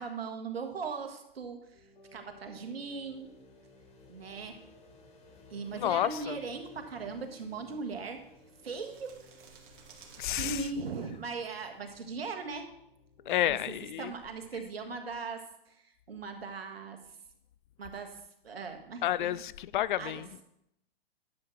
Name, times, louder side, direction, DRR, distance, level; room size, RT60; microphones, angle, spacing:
voice 1, 0.0-1.8 2.1-3.3 4.1-4.6 5.5-8.2 8.6-9.1 9.5-9.6 10.4-12.7 13.3-13.6 14.0-17.0 17.8-19.3 20.0-20.2, right 4 dB, 80° right, 1.6 m, -39 dB
sound 1, 1.5-10.2, left 3 dB, 20° left, 1.6 m, -60 dB
sound 2, 1.7-14.5, left 1 dB, 85° left, 2.3 m, -61 dB
voice 2, 5.7-6.4 10.2-10.7 13.3-14.1 19.0-20.4, left 12 dB, 55° left, 0.4 m, -30 dB
sound 3, 7.2-12.2, right 5 dB, 55° right, 2.3 m, -58 dB
11.0 x 7.5 x 3.2 m
hypercardioid pair, 120°, 30 cm